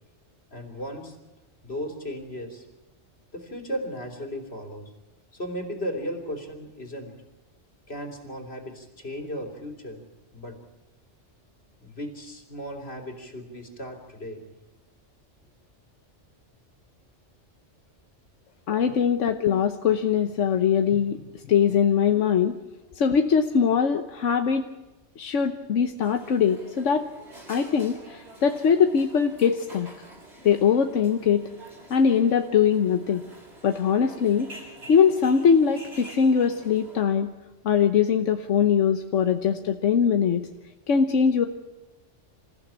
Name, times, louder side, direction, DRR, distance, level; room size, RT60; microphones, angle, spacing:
voice 1, 0.5-1.2 1.6-2.7 3.3-4.9 5.3-7.1 7.9-10.0 10.3-10.6 11.8-14.4 19.3-19.4, equal, 60° left, 3 dB, 3.5 m, -36 dB
voice 2, 18.7-21.2 21.5-22.5 23.0-24.7 25.2-27.0 27.5-29.9 30.4-31.4 31.9-33.2 33.6-34.5 34.9-37.3 37.6-40.5 40.9-41.5, left 7 dB, 85° left, 6 dB, 1.3 m, -22 dB
sound 1, 26.0-37.0, right 1 dB, 65° right, 6.5 m, -47 dB
27.0 x 15.0 x 8.8 m, 1.1 s
omnidirectional pair, 1.2 m